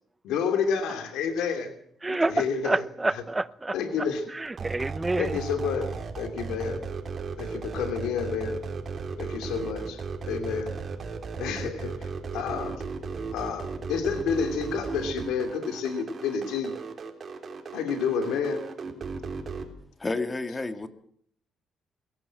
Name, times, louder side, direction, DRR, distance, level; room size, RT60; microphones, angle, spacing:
voice 1, 0.2-1.7 2.1-3.2 3.7-4.3 5.2-5.9 6.2-6.8 7.4-8.6 9.2-10.7 11.4-12.8 13.3-16.7 17.7-18.6, left 6 dB, 90° left, 2.8 m, -30 dB
voice 2, 2.0-3.8 4.3-5.3, right 2 dB, 15° right, 0.8 m, -28 dB
sound 1, 4.5-19.7, right 5 dB, 45° right, 3.7 m, -35 dB
voice 3, 20.0-20.9, left 3 dB, 20° left, 2.2 m, -30 dB
22.0 x 17.0 x 7.7 m
cardioid pair, 90°, 0 cm